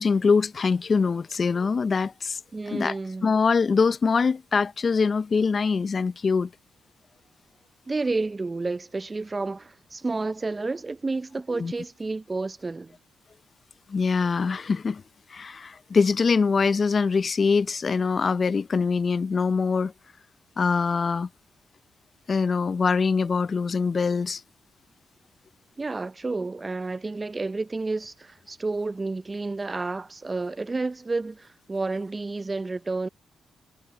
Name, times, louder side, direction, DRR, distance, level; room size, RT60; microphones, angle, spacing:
voice 1, 0.0-2.4 2.7-2.9 3.2-6.5 11.5-11.7 13.9-15.0 15.3-19.9 20.6-21.3 22.3-24.4, left 5 dB, 45° left, 0.5 m, -23 dB
voice 2, 2.5-3.3 7.9-13.0 25.8-33.1, right 3 dB, 30° right, 0.6 m, -30 dB
cardioid pair, 75°, 0 cm